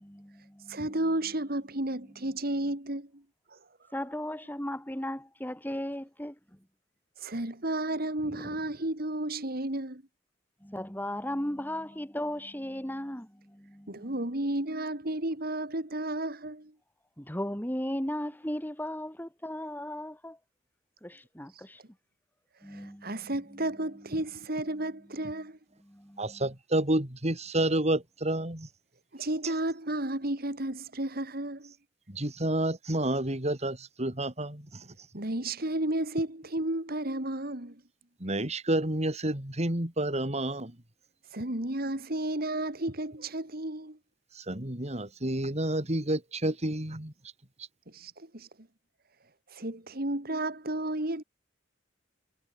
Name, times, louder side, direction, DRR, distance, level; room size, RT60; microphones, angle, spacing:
voice 1, 0.0-1.0 2.0-2.4 3.9-6.6 8.2-8.6 10.6-14.1 17.2-20.4 21.0-21.8 22.6-23.7 24.7-24.9 25.8-26.4, left 1 dB, 10° left, 4.2 m, -37 dB
voice 2, 0.7-3.2 3.5-3.6 7.2-10.0 13.9-16.7 22.7-25.6 29.1-31.7 35.1-37.8 41.3-44.0 47.9-48.5 49.5-51.2, right 1 dB, 55° right, 3.2 m, -32 dB
voice 3, 26.2-28.7 29.4-29.5 32.1-34.9 38.2-40.8 44.3-47.1 47.6-47.7, right 1 dB, 35° right, 3.9 m, -30 dB
head